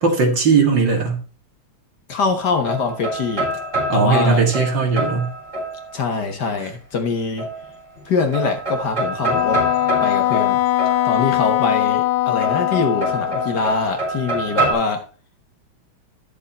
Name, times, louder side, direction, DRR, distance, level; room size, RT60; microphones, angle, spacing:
voice 1, 0.0-1.2 3.9-5.3, right 4 dB, 60° right, 2 dB, 2.6 m, -18 dB
voice 2, 2.1-3.5 3.9-4.4 5.9-7.5 8.0-9.6 10.0-10.6 11.0-15.0, left 4 dB, 55° left, 5 dB, 1.7 m, -23 dB
sound 1, 2.2-6.2 7.4-8.0 8.3-11.5 12.4-14.7, right 2 dB, 35° right, 4.5 m, -26 dB
Wind instrument woodwind instrument, 9.3-13.8, left 15 dB, 90° left, 1.7 m, -20 dB
11.0 x 6.8 x 4.2 m, 0.36 s
omnidirectional pair, 2.4 m